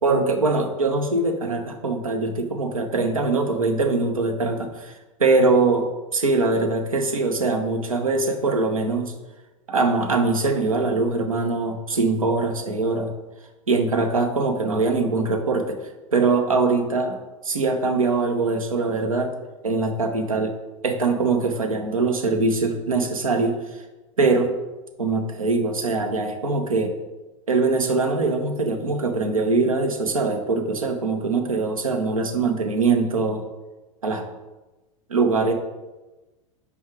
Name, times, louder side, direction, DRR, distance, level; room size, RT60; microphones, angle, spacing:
voice 1, 0.0-4.9 5.2-9.1 9.7-13.1 13.7-15.8 16.1-17.2 17.4-19.3 19.6-20.5 20.8-23.5 24.2-24.5 25.0-26.9 27.5-33.4 34.0-34.3 35.1-35.5, right 3 dB, 85° right, 5 dB, 0.9 m, -22 dB
5.4 x 4.9 x 4.6 m, 1.1 s
figure-of-eight pair, 90°, 17 cm